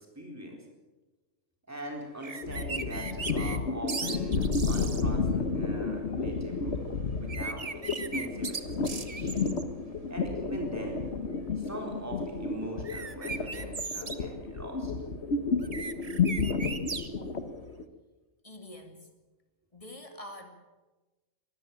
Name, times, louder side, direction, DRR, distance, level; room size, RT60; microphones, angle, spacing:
voice 1, 0.2-0.6 1.7-9.5 10.1-11.0 11.6-14.9, right 1 dB, 10° right, 0 dB, 4.0 m, -42 dB
sound 1, 2.2-3.6 3.9-5.0 7.3-9.6 12.8-14.2 15.6-17.1, right 4 dB, 30° right, 1.1 m, -37 dB
sound 2, 2.4-17.8, left 4 dB, 60° left, 1.6 m, -31 dB
voice 2, 17.2-17.5 18.4-19.1 19.7-20.5, left 1 dB, 25° left, 4 dB, 2.6 m, -46 dB
23.0 x 13.5 x 8.8 m, 1.2 s
omnidirectional pair, 1.3 m